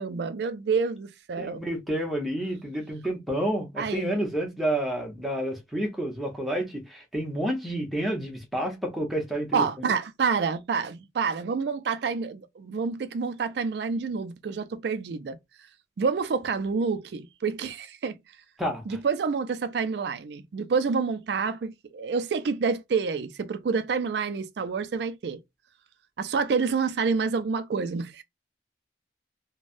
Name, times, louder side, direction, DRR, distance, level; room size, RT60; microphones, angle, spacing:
voice 1, 0.0-1.7 3.8-4.1 9.5-15.4 16.0-18.2 18.9-25.4 26.2-28.2, right 5 dB, 75° right, 0.4 m, -28 dB
voice 2, 1.4-9.9 18.6-19.0, right 1 dB, ahead, 0.9 m, -30 dB
3.2 x 2.2 x 2.5 m
head